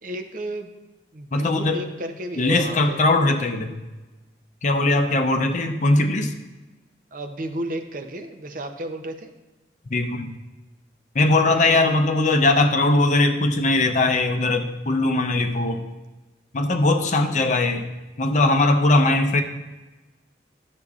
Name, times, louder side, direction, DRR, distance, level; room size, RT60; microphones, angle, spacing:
voice 1, 0.0-0.7 1.1-3.0 7.1-9.3 11.5-11.9 19.0-19.2, right 1 dB, 45° right, 6 dB, 0.6 m, -33 dB
voice 2, 1.3-1.8 2.4-3.8 4.6-6.3 9.9-10.3 11.1-15.8 16.5-17.9 18.2-19.4, left 2 dB, 40° left, 5 dB, 0.6 m, -20 dB
11.5 x 6.6 x 2.4 m, 1.1 s
head